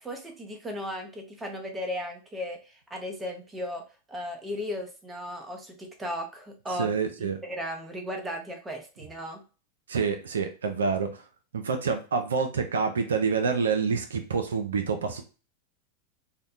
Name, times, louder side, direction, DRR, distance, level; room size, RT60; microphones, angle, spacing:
voice 1, 0.0-3.8 4.1-6.9 7.2-9.4, equal, 15° right, 3 dB, 0.6 m, -36 dB
voice 2, 6.7-7.4 9.9-11.2 11.5-15.2, right 5 dB, 75° right, 6 dB, 0.3 m, -27 dB
2.6 x 2.1 x 2.4 m, 0.33 s
figure-of-eight pair, 90°, 0 cm